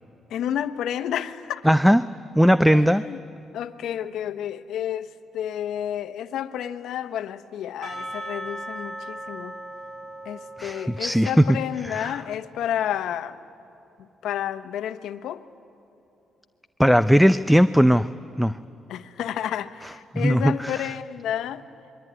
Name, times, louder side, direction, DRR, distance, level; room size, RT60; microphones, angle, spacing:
voice 1, 0.3-1.7 2.7-3.2 3.5-9.5 10.2-13.4 14.2-15.4 18.9-21.6, left 10 dB, 80° left, 1.1 m, -30 dB
voice 2, 1.6-2.0 2.3-3.0 10.6-11.5 11.8-12.2 16.8-18.1 18.4-18.6 20.1-20.9, equal, ahead, 0.5 m, -18 dB
Percussion / Church bell, 7.8-12.2, right 1 dB, 35° right, 7.0 m, -38 dB
26.5 x 23.0 x 9.6 m
cardioid pair, 90°, 0 cm